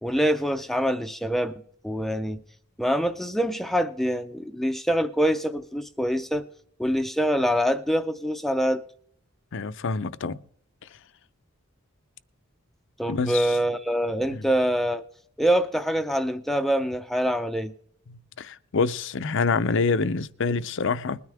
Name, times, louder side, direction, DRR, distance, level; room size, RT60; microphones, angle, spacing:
voice 1, 0.0-2.4 2.8-6.4 6.8-8.8 13.0-15.0 15.4-17.7, equal, ahead, 0.5 m, -25 dB
voice 2, 9.5-10.4 13.1-13.6 14.3-14.4 18.1-21.2, left 4 dB, 65° left, 0.6 m, -26 dB
21.0 x 9.5 x 3.5 m
head